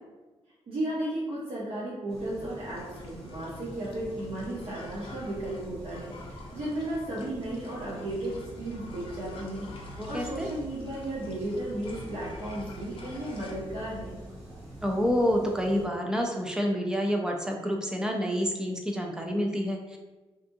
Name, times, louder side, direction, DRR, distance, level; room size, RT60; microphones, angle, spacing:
voice 1, 0.7-14.2, right 1 dB, 60° right, -8 dB, 0.7 m, -34 dB
sound 1, 2.1-15.9, equal, 75° right, 1.0 m, -45 dB
sound 2, 2.7-13.6, left 2 dB, 55° left, 0.4 m, -50 dB
voice 2, 10.0-10.5 14.8-20.0, equal, 5° right, 1 dB, 0.3 m, -28 dB
2.6 x 2.5 x 2.6 m, 1.2 s
wide cardioid pair, 135°, 11 cm